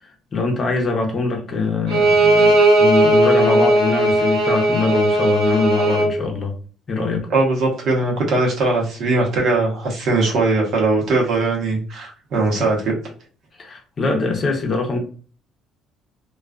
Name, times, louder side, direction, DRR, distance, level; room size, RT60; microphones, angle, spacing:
voice 1, 0.0-6.5 6.9-7.3 13.6-15.0, left 3 dB, 35° left, 2 dB, 0.7 m, -23 dB
Bowed string instrument, 1.9-6.1, right 1 dB, 85° right, 1.0 m, -16 dB
voice 2, 7.3-12.9, right 3 dB, 55° right, -1 dB, 0.9 m, -20 dB
2.3 x 2.3 x 2.3 m, 0.40 s
cardioid pair, 120°, 0 cm